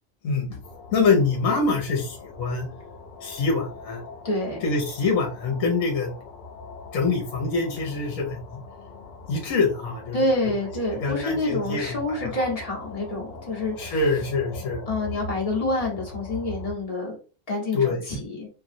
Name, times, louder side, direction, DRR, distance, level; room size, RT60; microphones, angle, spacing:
voice 1, 0.2-0.6 0.9-2.6 3.2-4.0 4.6-6.1 6.9-8.6 9.3-10.2 10.4-10.5 10.9-12.3 13.8-14.8 17.7-18.1, left 4 dB, 75° left, 2 dB, 1.1 m, -25 dB
sound 1, 0.6-16.7, left 2 dB, 60° left, 0.8 m, -41 dB
voice 2, 4.2-4.6 10.1-13.9 14.9-17.2 17.5-18.5, left 2 dB, 30° left, -2 dB, 0.9 m, -27 dB
2.9 x 2.5 x 2.5 m, 0.36 s
omnidirectional pair, 1.4 m